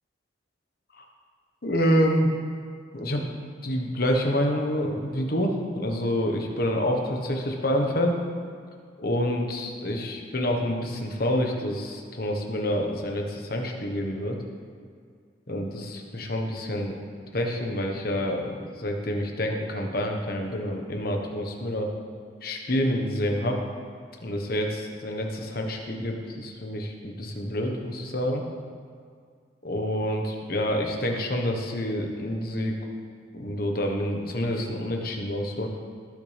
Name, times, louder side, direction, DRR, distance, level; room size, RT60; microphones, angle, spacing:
voice 1, 1.6-2.3 2.9-3.2 3.6-8.2 9.0-14.4 15.5-17.0 17.3-21.9 22.4-23.6 24.2-28.4 29.6-32.7 33.3-35.7, equal, 50° left, 2 dB, 1.3 m, -27 dB
18.0 x 7.1 x 3.4 m, 2.1 s
head